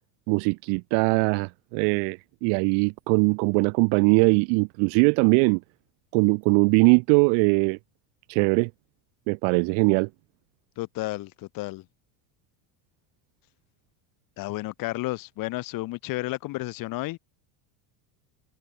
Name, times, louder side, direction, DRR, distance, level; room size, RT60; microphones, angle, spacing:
voice 1, 0.3-5.6 6.1-7.8 8.3-8.7 9.3-10.1, right 40 dB or more, 55° right, 0.7 m, -21 dB
voice 2, 10.8-11.8 14.4-17.2, left 19 dB, 40° left, 1.8 m, -32 dB
cardioid pair, 175°, 49 cm